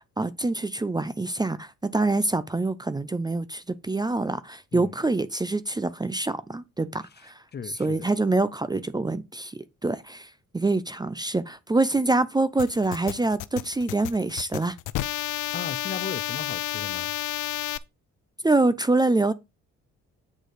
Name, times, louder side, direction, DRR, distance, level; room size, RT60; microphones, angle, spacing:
voice 1, 0.2-14.8 18.4-19.3, right 2 dB, 15° right, 0.6 m, -25 dB
voice 2, 7.5-8.1 15.5-17.1, left 6 dB, 35° left, 0.7 m, -36 dB
sound 1, 12.6-17.8, left 15 dB, 85° left, 0.6 m, -31 dB
8.4 x 3.8 x 6.6 m
cardioid pair, 90°, 30 cm